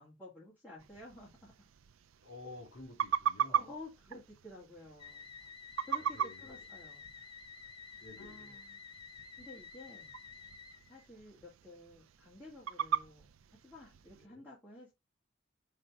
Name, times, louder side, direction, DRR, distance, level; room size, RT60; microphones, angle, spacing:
voice 1, 0.0-1.7 3.5-5.3 5.9-7.1 8.2-8.8 9.4-10.1 10.9-13.3 13.6-14.9, left 2 dB, 5° left, 2.5 m, -52 dB
sound 1, 0.8-14.3, right 8 dB, 80° right, 0.4 m, -40 dB
voice 2, 2.2-3.7 5.8-6.7 7.9-8.6 14.2-14.4, left 2 dB, 60° left, 2.6 m, -52 dB
sound 2, 5.0-11.1, left 6 dB, 25° left, 0.5 m, -51 dB
5.7 x 3.4 x 5.0 m
head